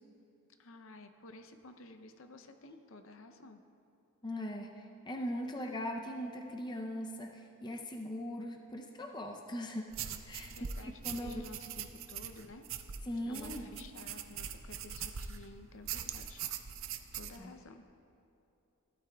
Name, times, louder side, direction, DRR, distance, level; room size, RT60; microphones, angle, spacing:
voice 1, 0.6-3.6 10.5-12.7 13.3-16.4 17.1-17.9, left 2 dB, 60° left, 7 dB, 0.6 m, -52 dB
voice 2, 4.2-9.9 10.2-10.5 11.0-11.4 13.1-13.6 17.4-17.5, left 1 dB, 20° left, 2 dB, 0.5 m, -40 dB
sound 1, 9.9-15.5 15.8-17.4, right 8 dB, 60° right, 0.5 m, -42 dB
16.0 x 12.0 x 2.3 m, 2.7 s
head